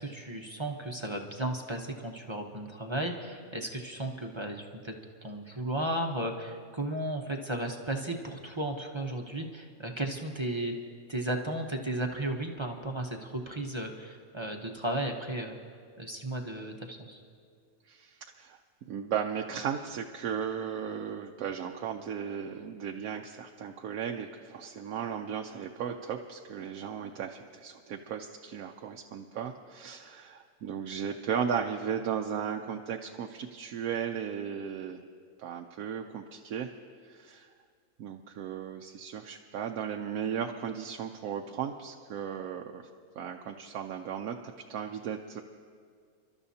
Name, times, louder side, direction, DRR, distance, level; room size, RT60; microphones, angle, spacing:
voice 1, 0.0-4.9 5.2-10.7 11.1-15.6 16.0-17.2, right 1 dB, 25° right, 2 dB, 0.8 m, -34 dB
voice 2, 17.8-18.6 18.9-35.0 35.4-36.7 37.0-37.5 38.0-42.8 43.2-45.4, right 8 dB, 90° right, 2 dB, 1.1 m, -36 dB
29.5 x 12.5 x 2.8 m, 2.2 s
omnidirectional pair, 1.4 m